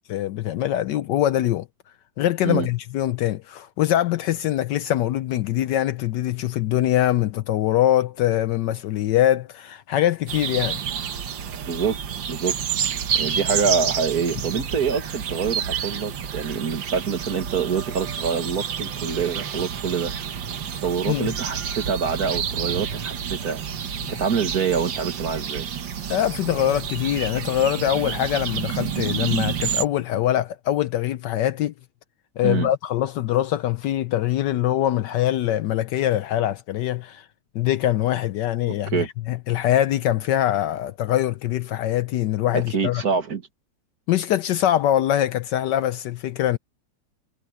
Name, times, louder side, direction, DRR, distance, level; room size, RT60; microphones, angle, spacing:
voice 1, 0.1-1.7 2.2-10.8 21.1-21.3 24.0-24.1 26.1-31.7 32.4-37.3 37.5-43.0 44.1-46.6, left 12 dB, 70° left, 1.1 m, -23 dB
sound 1, 10.3-29.8, right 8 dB, 65° right, 2.0 m, -29 dB
voice 2, 11.7-12.0 12.3-12.6 13.1-20.3 20.8-23.6 24.1-25.7 32.4-32.7 38.9-39.1 42.5-43.4, right 6 dB, 50° right, 2.0 m, -26 dB
omnidirectional pair, 2.2 m